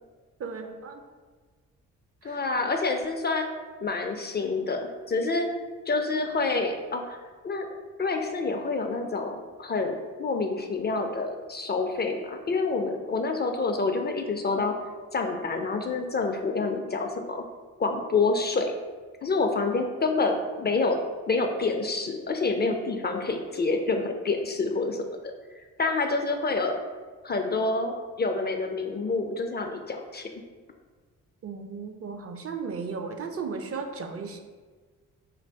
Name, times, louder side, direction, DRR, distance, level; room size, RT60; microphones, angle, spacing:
voice 1, 0.4-1.0 2.2-2.4 31.4-34.4, right 5 dB, 40° right, 5 dB, 0.4 m, -35 dB
voice 2, 2.2-3.5 3.8-5.5 5.9-7.2 7.4-7.7 8.0-14.7 15.1-17.4 17.8-18.7 19.2-21.0 21.3-25.0 25.8-26.8 27.2-30.3, left 3 dB, 30° left, 4 dB, 0.4 m, -27 dB
2.6 x 2.5 x 3.3 m, 1.4 s
hypercardioid pair, 45°, 35 cm